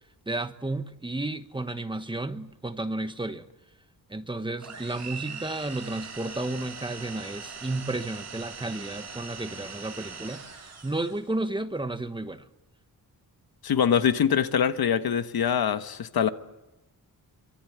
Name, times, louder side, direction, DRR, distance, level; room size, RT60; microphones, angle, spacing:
voice 1, 0.3-3.5 4.1-12.5, right 2 dB, 15° right, 1.1 m, -32 dB
sound 1, 4.6-11.3, right 5 dB, 45° right, 5.9 m, -41 dB
voice 2, 13.6-16.3, left 8 dB, 80° left, 1.4 m, -24 dB
24.5 x 24.0 x 9.5 m
wide cardioid pair, 155°, 36 cm